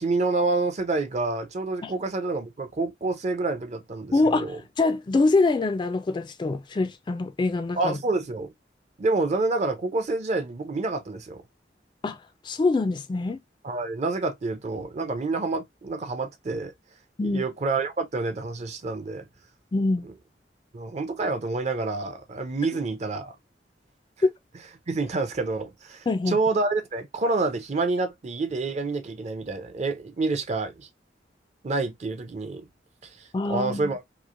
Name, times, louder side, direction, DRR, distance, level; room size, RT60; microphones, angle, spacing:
voice 1, 0.0-4.6 7.8-8.5 9.0-11.4 13.6-16.7 17.2-19.2 20.0-20.1 20.7-23.3 24.9-30.9 31.6-32.7 33.2-34.0, right 3 dB, 40° right, 0.5 m, -28 dB
voice 2, 4.1-8.0 12.0-12.2 12.4-13.4 17.2-17.4 19.7-20.1 24.2-24.3 26.1-26.4 33.3-33.9, left 3 dB, 25° left, 0.3 m, -24 dB
3.0 x 2.4 x 2.4 m
head